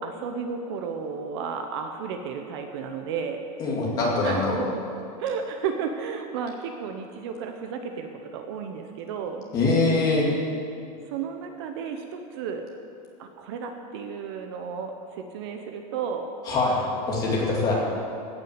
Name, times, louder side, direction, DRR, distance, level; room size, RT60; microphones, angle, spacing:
voice 1, 0.0-3.4 4.2-4.8 5.2-9.4 11.1-12.6 13.2-16.3 17.4-17.7, right 6 dB, 45° right, 5 dB, 0.8 m, -33 dB
voice 2, 3.6-4.6 9.5-10.3 16.4-17.7, left 3 dB, 20° left, -4 dB, 2.5 m, -23 dB
16.0 x 6.3 x 7.9 m, 2.6 s
supercardioid pair, 180°, 19 cm